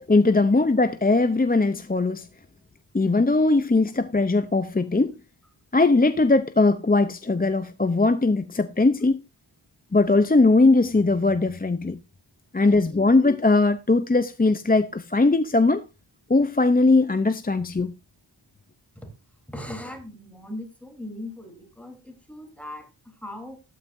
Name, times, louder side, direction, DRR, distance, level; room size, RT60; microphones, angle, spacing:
voice 1, 0.1-2.3 2.9-5.2 5.7-9.2 9.9-12.0 12.5-15.8 16.3-17.9, left 3 dB, 20° left, 0.6 m, -20 dB
voice 2, 12.6-13.1 19.0-19.1 19.5-23.6, left 1 dB, 5° left, 3.6 m, -39 dB
13.0 x 12.5 x 2.6 m
wide cardioid pair, 80°, 46 cm